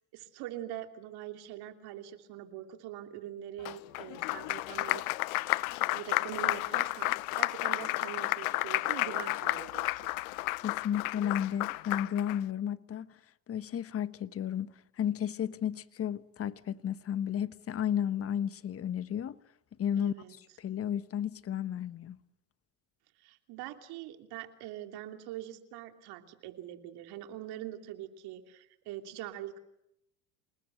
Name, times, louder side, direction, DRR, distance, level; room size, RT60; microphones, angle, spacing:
voice 1, 0.1-5.0 5.5-10.1 20.0-20.3 23.2-29.6, right 12 dB, 65° right, 3.1 m, -43 dB
Applause, 3.7-12.4, left 22 dB, 80° left, 0.9 m, -32 dB
voice 2, 10.6-13.1 13.5-14.7 15.0-19.4 19.8-20.1 20.6-22.2, left 9 dB, 35° left, 1.1 m, -33 dB
28.0 x 20.0 x 7.9 m
supercardioid pair, 95°, 42 cm